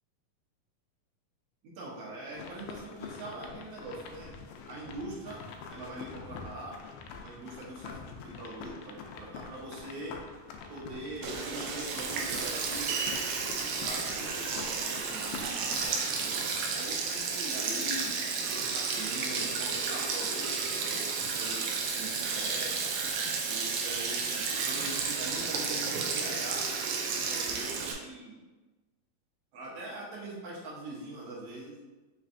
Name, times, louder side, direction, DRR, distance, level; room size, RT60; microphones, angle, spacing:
voice 1, 1.6-4.3 4.7-5.4 5.7-6.8 7.2-10.2 10.7-13.0 13.6-16.4 16.7-18.1 18.5-22.9 23.4-26.6 27.1-28.4 29.5-31.8, right 2 dB, 65° right, -5 dB, 1.6 m, -43 dB
sound 1, 2.3-15.9, left 5 dB, 85° left, 2.4 m, -45 dB
Sink (filling or washing), 11.2-27.9, right 5 dB, 85° right, 1.8 m, -32 dB
5.7 x 3.1 x 2.6 m, 1.2 s
omnidirectional pair, 4.2 m